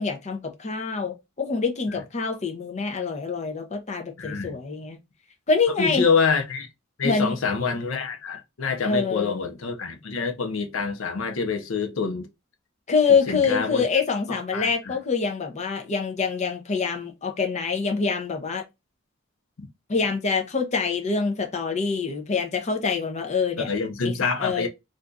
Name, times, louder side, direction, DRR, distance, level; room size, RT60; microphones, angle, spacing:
voice 1, 0.0-5.0 5.5-6.1 7.0-7.4 8.8-9.4 12.9-18.6 19.9-23.7 24.0-24.7, left 5 dB, 35° left, 0.6 m, -25 dB
voice 2, 4.2-4.6 5.8-6.7 7.0-12.3 13.3-13.8 14.5-15.0 23.6-24.7, left 5 dB, 75° left, 0.6 m, -26 dB
2.6 x 2.3 x 3.7 m
head